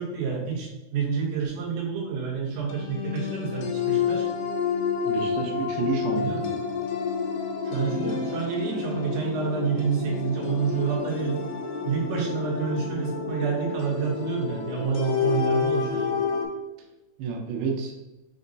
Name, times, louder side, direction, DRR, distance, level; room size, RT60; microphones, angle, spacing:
voice 1, 0.0-4.3 5.1-5.2 6.1-6.6 7.6-11.4 11.8-16.2, right 6 dB, 65° right, -3 dB, 2.3 m, -28 dB
sound 1, 2.7-16.5, left 6 dB, 80° left, 2.4 m, -29 dB
voice 2, 5.1-6.3 17.2-18.0, right 5 dB, 90° right, 1 dB, 2.7 m, -29 dB
6.2 x 2.2 x 3.9 m, 1.1 s
omnidirectional pair, 4.5 m